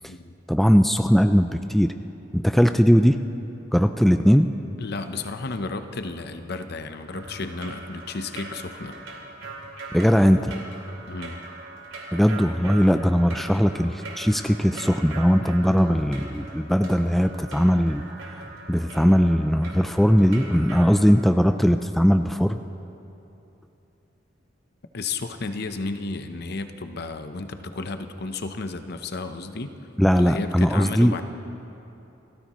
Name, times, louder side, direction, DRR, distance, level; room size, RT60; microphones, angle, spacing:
voice 1, 0.5-1.9 2.3-3.2 3.7-4.5 9.9-10.6 12.1-18.4 18.7-22.6 30.0-31.1, equal, ahead, 8 dB, 0.3 m, -19 dB
voice 2, 4.8-9.0 11.1-11.4 24.9-29.7 30.1-31.2, left 3 dB, 55° left, 8 dB, 0.8 m, -33 dB
sound 1, 7.1-20.9, right 3 dB, 90° right, 3.2 m, -41 dB
29.0 x 14.5 x 3.1 m, 3.0 s
head